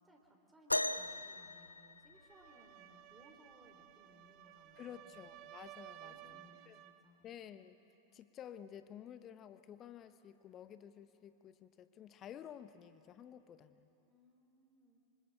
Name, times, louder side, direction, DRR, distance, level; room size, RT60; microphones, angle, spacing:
voice 1, 0.0-5.2 6.0-7.3 14.1-15.0, equal, 10° right, 1 dB, 3.2 m, -65 dB
sound 1, 0.7-2.6 4.3-4.4 5.1-5.4 6.3-6.4, left 1 dB, 85° left, 0.5 m, -38 dB
sound 2, 2.1-7.1, right 14 dB, 40° right, 0.8 m, -56 dB
voice 2, 4.8-6.4 6.7-6.8 7.2-7.8 8.1-13.9, left 9 dB, 30° left, 12 dB, 0.8 m, -52 dB
26.5 x 25.0 x 6.5 m, 3.0 s
figure-of-eight pair, 90°, 0 cm